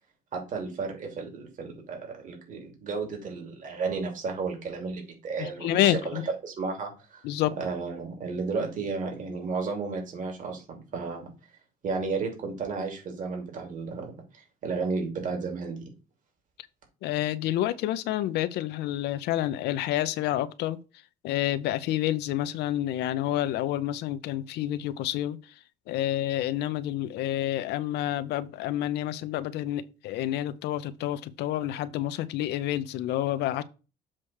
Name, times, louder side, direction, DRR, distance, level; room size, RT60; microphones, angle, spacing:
voice 1, 0.3-7.2 7.6-11.3 11.8-15.9, right 4 dB, 50° right, 2.7 m, -33 dB
voice 2, 5.6-6.2 7.2-7.5 17.0-20.8 21.2-25.4 25.9-33.6, left 13 dB, 80° left, 0.7 m, -28 dB
7.4 x 3.2 x 6.3 m
cardioid pair, 110°, 17 cm